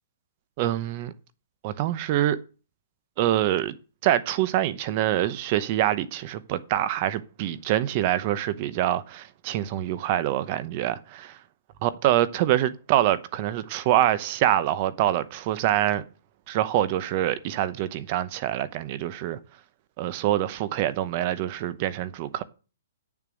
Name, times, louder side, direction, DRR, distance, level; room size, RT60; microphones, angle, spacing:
voice 1, 0.6-1.1 1.6-2.4 3.2-3.7 4.0-11.4 11.8-16.0 16.5-19.4 20.0-22.4, right 12 dB, 30° right, 0.8 m, -25 dB
8.8 x 7.0 x 6.4 m
hypercardioid pair, 170°, 0 cm